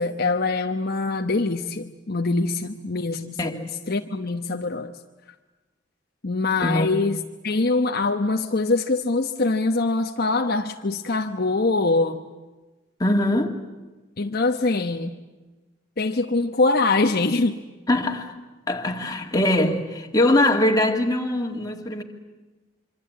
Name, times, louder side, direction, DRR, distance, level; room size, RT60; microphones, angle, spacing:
voice 1, 0.0-4.9 6.2-12.2 14.2-15.1 16.0-17.6, left 3 dB, 55° left, 1.0 m, -23 dB
voice 2, 13.0-13.6 17.9-18.4 18.7-22.0, left 1 dB, 20° left, 2.3 m, -22 dB
26.5 x 24.5 x 8.7 m
head